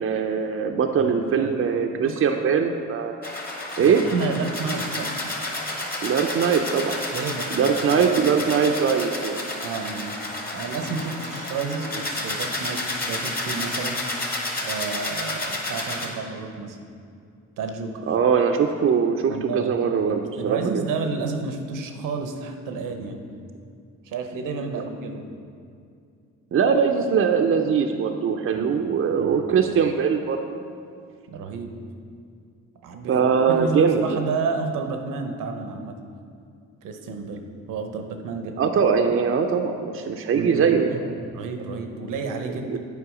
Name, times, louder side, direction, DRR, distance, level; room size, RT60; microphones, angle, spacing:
voice 1, 0.0-3.2 3.8-4.0 6.0-7.0 7.5-9.5 18.1-20.9 26.5-30.6 33.1-34.2 38.6-41.0 42.4-42.8, right 6 dB, 45° right, 3 dB, 0.5 m, -22 dB
voice 2, 1.0-1.5 2.0-2.2 3.8-5.1 7.1-7.7 8.0-8.1 9.6-10.2 10.5-14.0 14.6-16.8 17.6-18.0 19.2-23.2 24.0-25.3 28.5-28.8 29.2-29.4 31.3-31.7 32.8-36.0 36.8-38.6 40.3-42.8, right 4 dB, 80° right, 5 dB, 0.8 m, -31 dB
sound 1, 3.2-16.1, left 1 dB, 30° left, 1.4 m, -31 dB
8.3 x 4.6 x 4.9 m, 2.3 s
cardioid pair, 70°, 32 cm